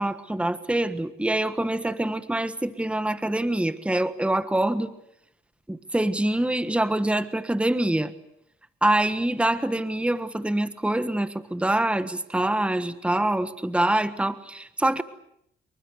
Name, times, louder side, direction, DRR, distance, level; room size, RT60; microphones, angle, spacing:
voice 1, 0.0-4.9 5.7-8.1 8.8-15.0, right 1 dB, 5° right, 12 dB, 1.4 m, -25 dB
27.0 x 23.5 x 8.2 m, 0.75 s
cardioid pair, 90°, 20 cm